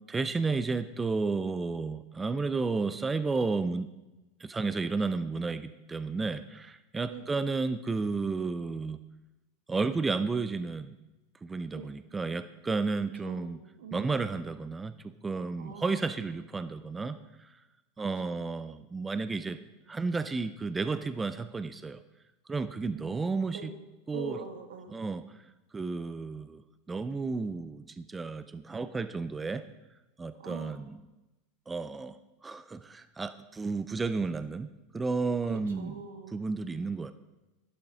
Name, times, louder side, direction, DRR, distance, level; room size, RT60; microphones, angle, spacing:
voice 1, 0.1-3.9 4.4-9.0 9.7-11.0 11.4-13.6 13.9-17.2 18.0-19.6 19.9-22.0 22.5-23.7 24.1-24.4 24.9-25.2 25.7-26.6 26.9-29.6 30.2-31.0 31.7-32.2 32.4-34.7 34.9-35.9 36.3-37.1, right 4 dB, 15° right, 13 dB, 0.5 m, -32 dB
voice 2, 13.2-14.1 15.6-16.0 18.0-18.4 22.9-23.2 23.5-23.7 24.1-25.0 30.4-30.8 35.4-36.4, right 6 dB, 90° right, 6 dB, 1.9 m, -44 dB
12.5 x 11.5 x 5.0 m, 1.0 s
supercardioid pair, 140°, 0 cm